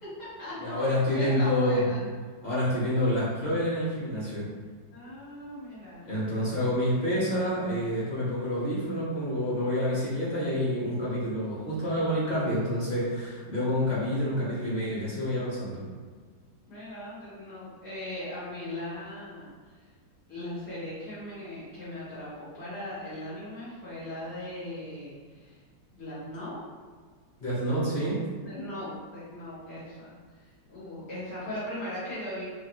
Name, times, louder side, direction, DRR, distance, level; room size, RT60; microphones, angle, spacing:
voice 1, 0.0-2.1 4.9-6.8 16.7-19.5 20.3-25.6 25.9-26.6 27.6-28.0 28.4-30.1 30.4-32.4, left 1 dB, 60° left, -12 dB, 2.2 m, -39 dB
voice 2, 0.6-1.8 2.4-4.5 6.0-15.8 27.4-28.2, equal, 25° left, -9 dB, 1.3 m, -28 dB
4.4 x 2.5 x 3.1 m, 1.5 s
omnidirectional pair, 2.0 m